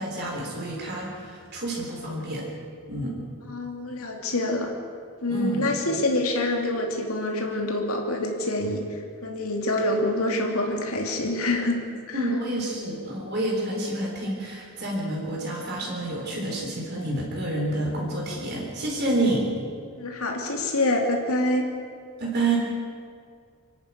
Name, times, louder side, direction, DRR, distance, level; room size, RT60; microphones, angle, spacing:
voice 1, 0.0-2.5 2.9-3.2 5.3-5.8 12.1-19.5 22.2-22.6, right 1 dB, 45° right, -2 dB, 3.7 m, -28 dB
voice 2, 3.5-4.7 5.2-11.8 12.1-12.2 20.0-21.7, left 1 dB, 80° left, 1 dB, 2.7 m, -26 dB
25.5 x 11.0 x 9.5 m, 2.2 s
head